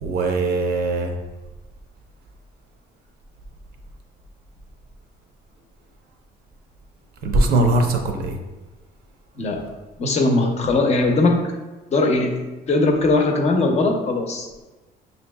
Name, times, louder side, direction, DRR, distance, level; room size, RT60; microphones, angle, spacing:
voice 1, 0.0-1.1 7.2-8.4, right 2 dB, 65° right, 4 dB, 0.6 m, -20 dB
voice 2, 10.0-11.4 11.9-12.3 12.7-14.5, left 2 dB, 40° left, 3 dB, 0.7 m, -19 dB
6.0 x 2.7 x 2.2 m, 1.1 s
cardioid pair, 110°, 17 cm